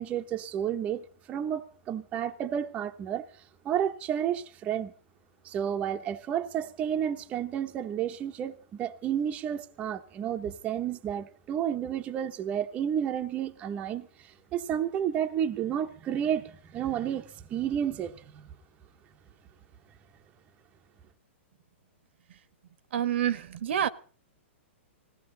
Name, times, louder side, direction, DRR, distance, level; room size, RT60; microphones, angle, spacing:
voice 1, 0.0-3.3 3.6-4.9 5.4-18.5, right 9 dB, 20° right, 1.0 m, -31 dB
voice 2, 22.9-23.9, right 10 dB, 60° right, 1.2 m, -28 dB
20.0 x 16.5 x 3.9 m
hypercardioid pair, 165°, 7 cm